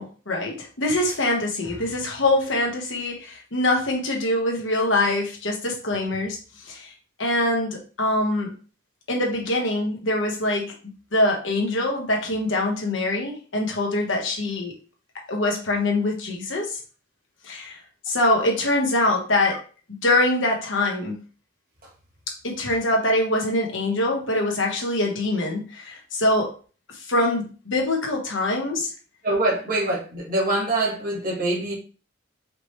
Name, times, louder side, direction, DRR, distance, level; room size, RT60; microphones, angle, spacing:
voice 1, 0.0-6.4 6.7-6.9 7.2-8.5 9.1-10.7 11.1-14.7 15.3-16.8 17.4-17.8 18.1-19.6 20.0-21.2 22.4-26.5 27.1-28.9, left 1 dB, 75° left, 1 dB, 1.4 m, -24 dB
voice 2, 29.2-31.7, right 2 dB, 45° right, -2 dB, 1.6 m, -24 dB
5.0 x 3.2 x 3.2 m, 0.37 s
head